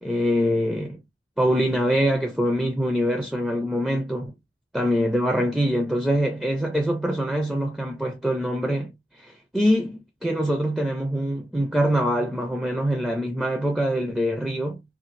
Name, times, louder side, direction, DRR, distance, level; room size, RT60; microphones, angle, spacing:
voice 1, 0.0-1.0 1.4-4.3 4.7-14.8, equal, 5° right, 0.4 m, -24 dB
2.6 x 2.5 x 3.0 m
head